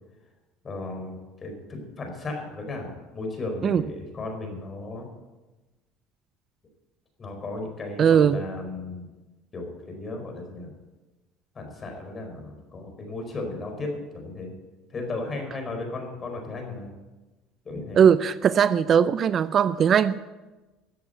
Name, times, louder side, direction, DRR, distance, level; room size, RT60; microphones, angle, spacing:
voice 1, 0.6-5.1 7.2-9.0 9.5-10.7 11.5-14.5 14.9-16.9 17.6-18.0, left 2 dB, 30° left, 3 dB, 4.5 m, -35 dB
voice 2, 8.0-8.4 18.0-20.3, right 8 dB, 45° right, 15 dB, 0.5 m, -19 dB
14.0 x 8.3 x 8.0 m, 1.2 s
supercardioid pair, 100°, 0 cm